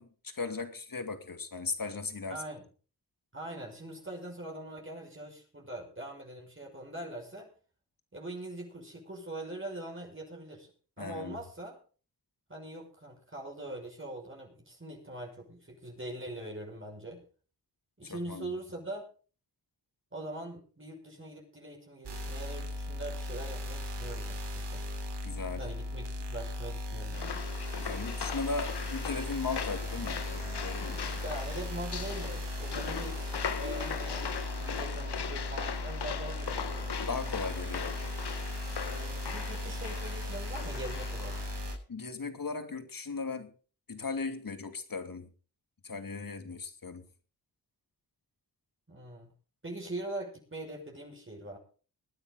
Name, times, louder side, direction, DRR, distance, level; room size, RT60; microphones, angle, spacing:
voice 1, 0.0-2.4 11.0-11.4 18.0-18.5 25.2-25.7 27.8-31.0 37.0-38.1 41.9-43.5 43.9-45.3 45.8-47.0, left 4 dB, 55° left, 8 dB, 2.7 m, -37 dB
voice 2, 2.3-2.6 3.3-7.5 8.1-10.7 11.0-11.8 12.5-17.2 18.0-19.0 20.1-24.8 25.6-27.4 31.2-36.9 38.9-41.4 48.9-49.3 49.6-51.6, right 1 dB, 30° right, 0 dB, 5.9 m, -42 dB
sound 1, 22.0-41.7, left 1 dB, 85° right, 3.5 m, -37 dB
sound 2, 27.1-41.8, left 7 dB, 75° left, 1.5 m, -39 dB
21.5 x 9.6 x 4.0 m, 0.38 s
cardioid pair, 45°, 40 cm